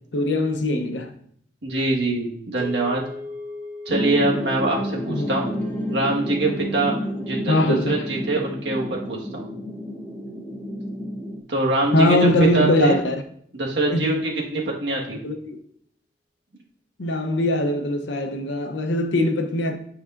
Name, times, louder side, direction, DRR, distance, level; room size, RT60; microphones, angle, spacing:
voice 1, 0.1-1.1 5.1-5.5 7.5-8.0 11.9-13.2 13.9-14.2 15.2-15.6 17.0-19.8, left 1 dB, 85° left, 0.7 m, -21 dB
voice 2, 1.6-3.0 3.8-5.5 5.9-9.5 11.5-12.3 12.5-13.0 13.6-15.2, right 2 dB, 75° right, 1.5 m, -24 dB
sound 1, 2.6-10.9, left 3 dB, 55° right, 1.8 m, -41 dB
sound 2, 3.9-11.4, equal, 10° left, 0.8 m, -30 dB
9.5 x 4.8 x 2.5 m
head